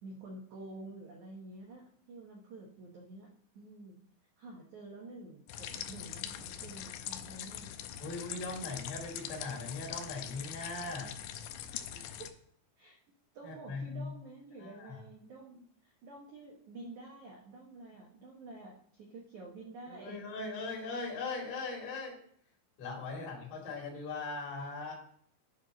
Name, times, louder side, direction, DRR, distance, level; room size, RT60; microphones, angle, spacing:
voice 1, 0.0-3.3 3.5-4.0 4.4-7.7 8.4-8.5 11.9-12.3 12.8-13.0 13.3-20.2, right 2 dB, 85° right, -2 dB, 1.7 m, -49 dB
sound 1, 5.5-12.3, left 10 dB, 85° left, 2.5 m, -43 dB
voice 2, 8.0-11.1 13.4-14.1 14.6-15.0 19.9-22.2 22.8-24.9, left 3 dB, 55° left, -3 dB, 3.8 m, -39 dB
9.4 x 4.0 x 6.3 m, 0.62 s
omnidirectional pair, 5.4 m